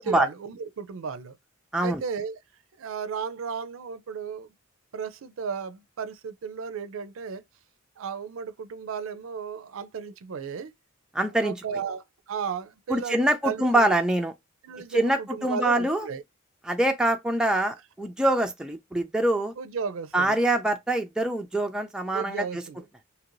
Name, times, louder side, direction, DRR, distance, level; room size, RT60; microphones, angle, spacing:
voice 1, 0.0-1.4 1.8-2.4 2.8-4.5 4.9-7.4 8.0-10.7 11.4-13.9 14.6-16.2 19.6-20.4 22.1-22.8, right 6 dB, 75° right, 0.4 m, -34 dB
voice 2, 11.1-11.6 12.9-14.3 14.9-16.1 16.7-19.5 20.1-22.6, right 1 dB, 5° right, 0.3 m, -24 dB
2.8 x 2.5 x 3.0 m
head